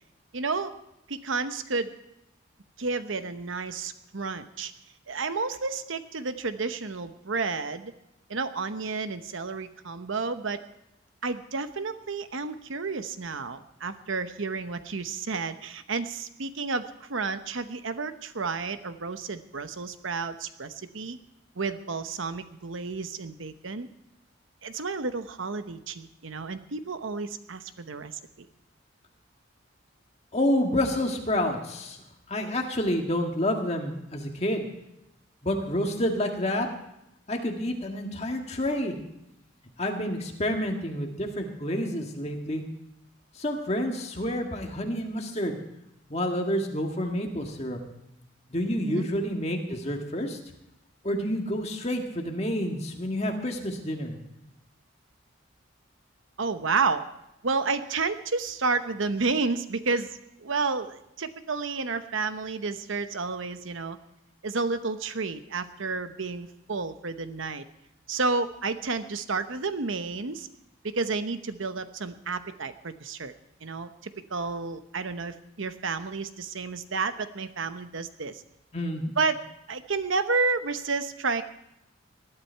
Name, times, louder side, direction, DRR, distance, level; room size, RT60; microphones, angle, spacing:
voice 1, 0.3-0.8 1.1-2.0 2.8-4.7 5.1-7.9 8.3-10.6 11.2-21.2 21.6-23.9 24.6-28.5 48.8-49.1 56.4-57.1 57.4-64.0 64.4-67.6 68.1-70.5 70.8-73.3 73.6-78.4 79.2-81.4, right 4 dB, 80° right, 10 dB, 0.9 m, -31 dB
voice 2, 30.3-32.0 32.3-34.7 35.4-36.7 37.3-39.0 39.8-42.6 43.4-45.6 46.1-47.8 48.5-50.4 51.0-54.2 78.7-79.0, left 1 dB, 30° left, 2 dB, 1.8 m, -29 dB
19.5 x 12.5 x 4.6 m, 0.85 s
head